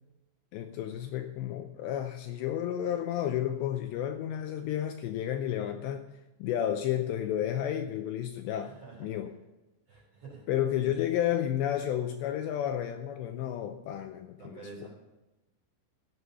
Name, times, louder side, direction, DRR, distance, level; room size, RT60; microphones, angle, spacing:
voice 1, 0.5-6.1 6.4-8.7 9.0-9.3 10.5-14.9, left 11 dB, 85° left, 6 dB, 2.5 m, -31 dB
voice 2, 8.5-9.1 9.9-10.5 10.8-10.9 14.4-14.9, right 3 dB, 35° right, -4 dB, 4.4 m, -48 dB
16.5 x 8.2 x 6.9 m, 1.0 s
omnidirectional pair, 5.8 m